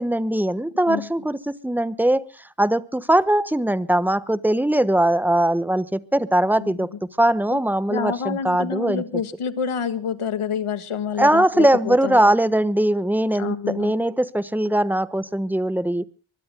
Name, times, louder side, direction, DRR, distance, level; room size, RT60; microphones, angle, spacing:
voice 1, 0.0-2.2 2.6-6.9 7.2-9.0 11.2-16.0, right 1 dB, 5° right, 15 dB, 1.2 m, -20 dB
voice 2, 6.6-6.9 7.5-7.6 7.9-12.3 13.3-13.9, left 7 dB, 80° left, 12 dB, 1.9 m, -28 dB
24.5 x 22.0 x 2.2 m, 0.38 s
cardioid pair, 70°, 49 cm